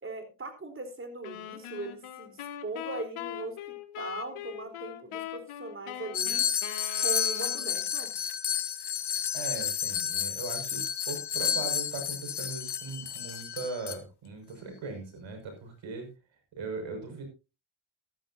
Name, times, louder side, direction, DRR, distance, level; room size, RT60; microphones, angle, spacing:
voice 1, 0.0-6.5 7.0-8.1, right 3 dB, 25° right, 7 dB, 4.0 m, -40 dB
sound 1, 1.2-7.8, left 11 dB, 80° left, 1.9 m, -41 dB
sound 2, 6.1-14.0, left 8 dB, 50° left, 1.3 m, -31 dB
voice 2, 9.3-16.1 16.6-17.2, right 3 dB, 65° right, 5 dB, 6.2 m, -39 dB
14.0 x 13.5 x 2.7 m, 0.29 s
cardioid pair, 85°, 49 cm